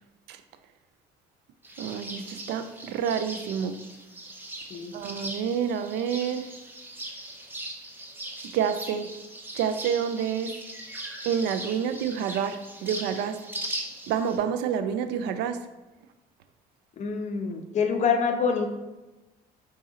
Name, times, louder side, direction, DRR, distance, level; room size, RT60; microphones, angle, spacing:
sound 1, 1.6-14.4, right 1 dB, 10° right, 0.7 m, -40 dB
voice 1, 1.8-3.8 4.9-6.5 8.5-9.1 9.6-10.5 11.2-13.4 14.1-15.6, right 8 dB, 85° right, 10 dB, 0.4 m, -28 dB
voice 2, 17.0-18.7, left 5 dB, 45° left, 6 dB, 0.5 m, -26 dB
4.8 x 2.6 x 3.9 m, 1.1 s
cardioid pair, 110°, 17 cm